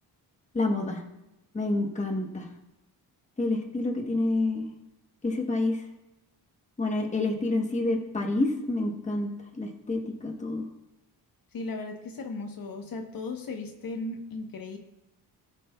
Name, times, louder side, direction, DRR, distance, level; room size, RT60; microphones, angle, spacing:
voice 1, 0.5-1.0 1.5-2.4 3.4-4.7 5.2-5.8 6.8-9.3 9.6-10.6, left 2 dB, 15° left, 3 dB, 1.0 m, -28 dB
voice 2, 11.5-14.8, left 3 dB, 55° left, 4 dB, 1.0 m, -36 dB
18.5 x 7.4 x 2.3 m, 0.93 s
wide cardioid pair, 135°, 41 cm